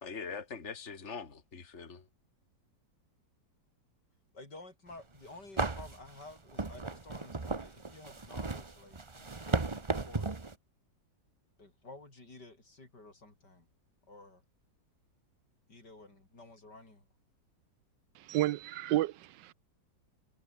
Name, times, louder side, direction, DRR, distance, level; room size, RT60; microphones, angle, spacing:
voice 1, 0.0-2.1, left 5 dB, 35° left, 2.8 m, -42 dB
voice 2, 4.3-10.5 11.6-13.7 14.1-14.4 15.7-17.1, left 2 dB, 60° left, 6.9 m, -52 dB
sound 1, 5.0-5.1 5.6-10.5, right 3 dB, 20° right, 0.8 m, -35 dB
voice 3, 18.2-19.5, right 15 dB, 75° right, 1.2 m, -31 dB
omnidirectional pair, 2.0 m